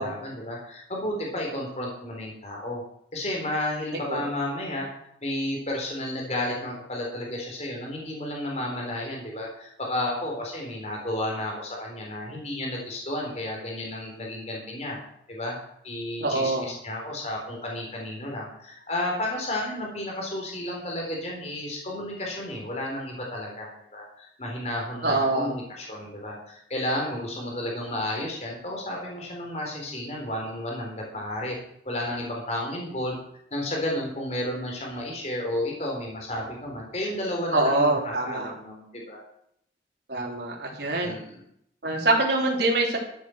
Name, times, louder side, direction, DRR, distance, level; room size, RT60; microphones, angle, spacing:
voice 1, 0.0-2.8 3.1-4.9 5.2-15.0 15.3-15.5 15.8-31.6 31.9-33.2 33.5-39.2 41.0-41.4, left 1 dB, 35° left, -1 dB, 3.8 m, -32 dB
voice 2, 16.2-16.7 25.0-25.5 37.5-38.5 40.1-41.1 41.8-43.0, right 2 dB, 65° right, -1 dB, 3.3 m, -24 dB
13.0 x 8.5 x 6.4 m, 0.73 s
head